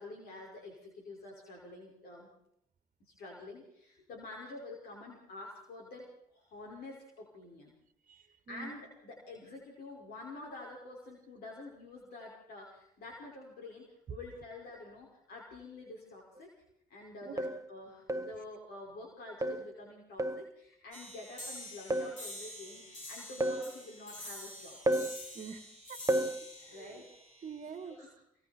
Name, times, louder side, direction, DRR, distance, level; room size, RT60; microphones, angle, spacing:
voice 1, 0.0-2.3 3.0-7.7 8.1-16.5 16.9-24.8 26.7-27.1 27.9-28.1, left 2 dB, 60° left, -1 dB, 5.7 m, -48 dB
voice 2, 8.1-8.7 14.1-14.2 17.2-17.4 25.3-26.0 26.6-27.1 27.4-28.0, right 6 dB, 45° right, 10 dB, 1.9 m, -46 dB
sound 1, 16.4-16.5 17.4-17.7 18.1-18.4 19.4-19.7 20.2-20.5 21.9-22.2 23.4-23.7 24.9-25.2 26.1-26.4, right 1 dB, 20° right, 1.1 m, -31 dB
sound 2, 20.9-27.9, left 1 dB, 45° left, 7.1 m, -47 dB
29.5 x 23.5 x 4.5 m, 0.74 s
hypercardioid pair, 65°, 17 cm